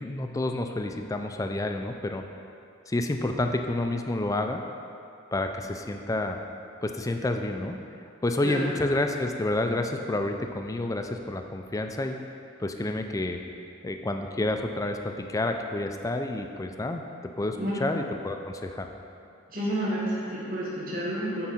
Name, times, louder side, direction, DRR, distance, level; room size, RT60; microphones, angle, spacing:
voice 1, 0.0-2.2 2.9-4.6 5.3-6.4 6.8-7.8 8.2-12.2 12.6-13.4 13.8-17.0 17.4-18.9, left 2 dB, 15° left, 5 dB, 0.4 m, -29 dB
voice 2, 19.5-21.4, right 1 dB, 45° right, -8 dB, 2.0 m, -30 dB
9.7 x 4.7 x 4.2 m, 2.5 s
head